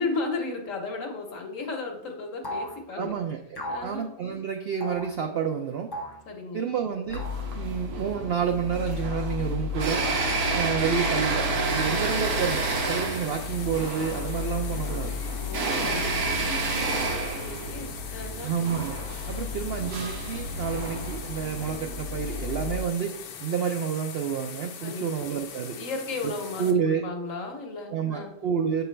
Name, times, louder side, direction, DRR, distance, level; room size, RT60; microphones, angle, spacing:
voice 1, 0.0-3.1 3.7-4.1 6.3-6.7 15.4-18.5 24.8-25.3 25.8-28.3, left 3 dB, 60° left, 2 dB, 1.4 m, -35 dB
sound 1, 2.4-2.8 3.5-3.9 4.8-5.1 5.9-6.2 7.1-7.5 8.9-9.4 10.2-10.9, equal, 30° left, 0.4 m, -37 dB
voice 2, 3.0-5.9 6.5-7.3 7.5-10.0 10.5-15.2 18.4-19.0 19.3-25.8 26.2-26.3 26.6-27.0 27.9-28.8, right 7 dB, 70° right, 4 dB, 0.5 m, -29 dB
sound 2, 7.1-22.8, right 1 dB, 85° right, 1.5 m, -30 dB
sound 3, 11.7-26.7, left 7 dB, 85° left, 1.2 m, -41 dB
7.3 x 4.5 x 3.3 m, 0.79 s
omnidirectional pair, 1.6 m